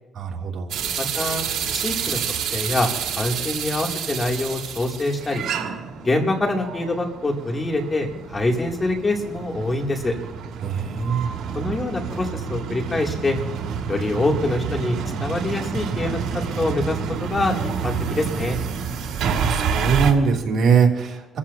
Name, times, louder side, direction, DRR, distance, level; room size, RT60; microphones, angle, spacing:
voice 1, 0.1-0.7 10.6-11.3 19.2-21.4, right 6 dB, 65° right, 0 dB, 2.9 m, -21 dB
sound 1, 0.7-20.1, right 7 dB, 80° right, 2.1 m, -29 dB
voice 2, 1.0-1.4 1.7-2.2 2.5-5.4 6.0-10.1 11.5-13.4 13.9-16.2 16.5-18.6, left 2 dB, 25° left, 1 dB, 2.8 m, -25 dB
28.0 x 14.5 x 2.8 m, 1.1 s
cardioid pair, 90°, 0 cm